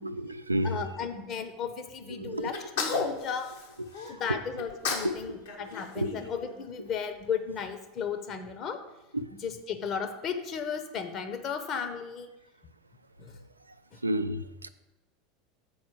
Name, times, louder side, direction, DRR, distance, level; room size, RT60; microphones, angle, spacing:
voice 1, 0.0-0.8 2.2-2.5 2.9-3.1 3.8-4.2 5.0-5.1 6.0-6.1 9.1-9.2 14.0-14.7, right 1 dB, 85° right, 10 dB, 0.3 m, -31 dB
voice 2, 0.6-3.5 4.1-8.8 9.2-12.3 13.2-13.4 13.9-14.0, left 6 dB, 40° left, 8 dB, 0.9 m, -35 dB
Sneeze, 2.5-4.1 4.6-5.2 5.4-6.9, left 5 dB, 60° left, 1.1 m, -33 dB
7.1 x 4.4 x 6.3 m, 0.99 s
figure-of-eight pair, 80°, 0 cm